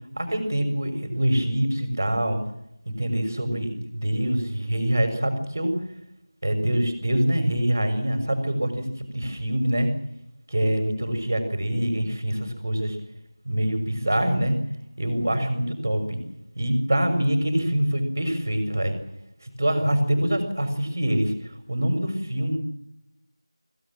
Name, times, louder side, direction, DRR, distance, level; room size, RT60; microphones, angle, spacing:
voice 1, 0.2-2.4 3.0-5.7 6.4-8.9 9.1-9.9 10.5-13.0 13.4-14.6 15.0-16.2 16.6-19.0 19.4-22.6, right 1 dB, 30° right, 7 dB, 6.2 m, -25 dB
26.0 x 18.5 x 7.6 m, 0.81 s
figure-of-eight pair, 180°, 3 cm